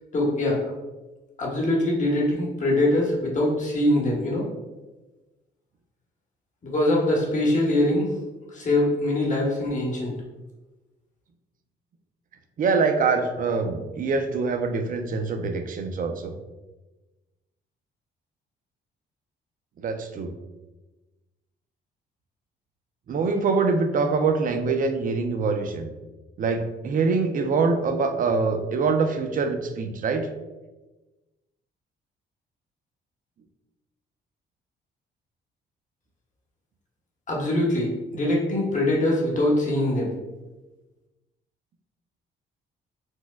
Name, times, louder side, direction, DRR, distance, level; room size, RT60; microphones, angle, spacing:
voice 1, 0.1-0.7 1.4-4.5 6.6-8.1 8.5-10.1 37.3-40.1, left 1 dB, 40° left, -3 dB, 1.1 m, -23 dB
voice 2, 12.6-16.3 19.8-20.3 23.1-25.9 26.4-30.3, right 4 dB, 45° right, 5 dB, 0.4 m, -24 dB
4.4 x 2.1 x 2.2 m, 1.1 s
cardioid pair, 90°, 20 cm